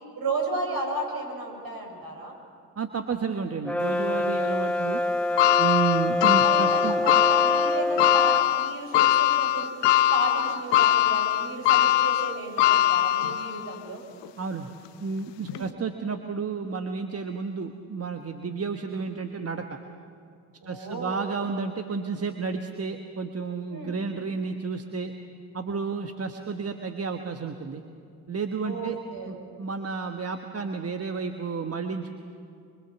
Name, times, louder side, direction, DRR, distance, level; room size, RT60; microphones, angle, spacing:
voice 1, 0.2-2.3 6.4-9.7 10.1-14.0 15.5-15.7 20.6-21.2 23.7-24.0 28.6-29.4, right 2 dB, 45° right, 2 dB, 6.9 m, -34 dB
voice 2, 2.8-5.0 5.6-7.0 14.4-14.7 15.0-19.8 20.6-25.1 25.5-27.8 28.3-29.0 29.3-32.2, right 5 dB, 30° right, 6 dB, 1.4 m, -31 dB
Brass instrument, 3.6-8.5, left 1 dB, 5° left, 0.9 m, -26 dB
sound 1, 5.4-13.7 14.2-14.3 15.5-15.6, left 13 dB, 60° left, 0.9 m, -22 dB
25.0 x 24.0 x 7.3 m, 2.5 s
hypercardioid pair, 55°, 48 cm